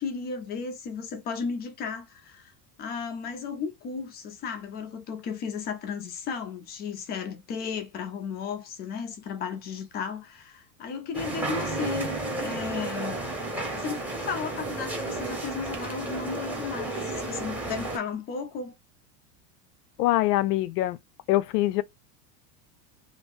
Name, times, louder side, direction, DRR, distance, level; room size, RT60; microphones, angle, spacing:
voice 1, 0.0-2.5 2.8-13.2 13.7-18.7, left 6 dB, 20° left, 0.4 m, -34 dB
sound 1, 11.1-18.0, right 2 dB, 5° right, 0.8 m, -32 dB
voice 2, 20.0-21.0 21.3-21.8, left 16 dB, 85° left, 0.6 m, -23 dB
2.7 x 2.6 x 3.5 m
supercardioid pair, 150°, 46 cm